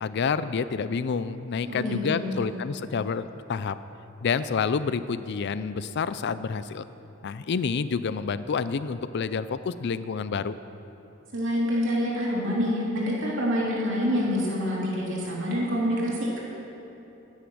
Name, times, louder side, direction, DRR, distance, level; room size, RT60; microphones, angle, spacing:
voice 1, 0.0-3.8 4.2-6.9 7.2-10.6, left 5 dB, 55° left, 14 dB, 0.4 m, -28 dB
voice 2, 1.6-2.4 11.3-16.4, equal, 65° right, -4 dB, 2.9 m, -27 dB
11.5 x 10.0 x 6.1 m, 3.0 s
head